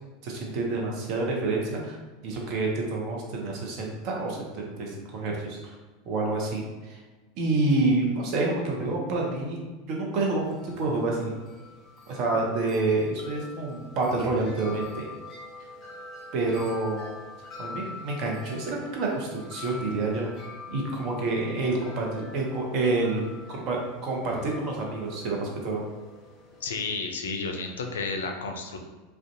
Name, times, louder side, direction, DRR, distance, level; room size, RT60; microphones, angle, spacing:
voice 1, 0.2-2.0 2.2-5.6 6.1-7.0 7.4-9.6 9.8-11.3 12.1-15.1 16.3-17.1 17.6-20.3 20.7-23.2 23.5-25.8, right 2 dB, 55° right, -1 dB, 0.7 m, -28 dB
Wind chime, 10.4-26.9, left 3 dB, 30° left, 0.8 m, -45 dB
voice 2, 26.6-28.8, left 4 dB, 80° left, 3 dB, 0.3 m, -32 dB
2.5 x 2.2 x 2.6 m, 1.3 s
hypercardioid pair, 90°, 0 cm